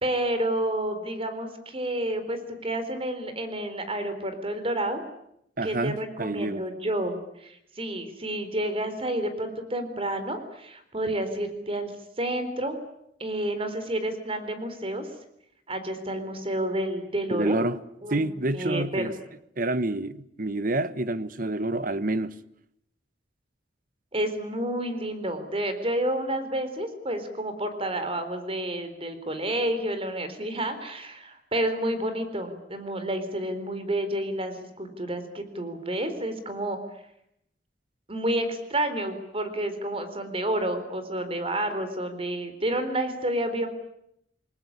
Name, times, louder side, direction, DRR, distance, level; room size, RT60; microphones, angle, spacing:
voice 1, 0.0-5.0 5.6-11.9 12.2-12.8 13.2-15.1 15.7-17.6 18.0-18.3 18.5-19.1 24.1-36.8 38.1-43.7, right 1 dB, 30° right, 4.0 m, -30 dB
voice 2, 5.6-6.6 17.3-17.8 18.1-19.1 19.6-22.4, right 2 dB, 50° right, 1.2 m, -28 dB
28.5 x 20.5 x 9.8 m
head